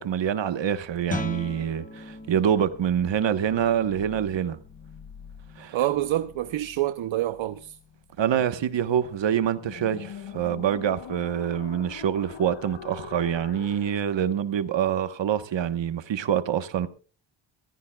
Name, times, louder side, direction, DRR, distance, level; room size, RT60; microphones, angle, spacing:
voice 1, 0.0-4.6 5.6-5.8 8.2-16.9, right 9 dB, 70° right, 1.3 m, -26 dB
sound 1, 0.9-14.1, left 9 dB, 75° left, 1.1 m, -45 dB
Guitar, 1.0-6.6, left 2 dB, 15° left, 1.0 m, -40 dB
voice 2, 5.7-7.8, right 14 dB, 85° right, 0.8 m, -27 dB
26.5 x 15.0 x 2.4 m
wide cardioid pair, 135°, 46 cm